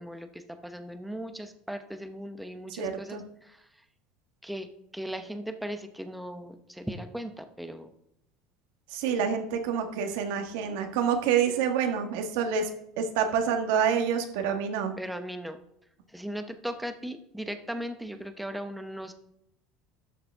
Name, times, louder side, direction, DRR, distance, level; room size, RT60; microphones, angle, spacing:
voice 1, 0.0-3.7 4.4-7.9 15.0-15.6 16.1-19.1, equal, ahead, 8 dB, 0.8 m, -38 dB
voice 2, 2.7-3.2 8.9-12.7 13.0-14.9, right 7 dB, 75° right, 5 dB, 1.4 m, -27 dB
12.5 x 6.6 x 3.5 m, 0.77 s
cardioid pair, 150°, 0 cm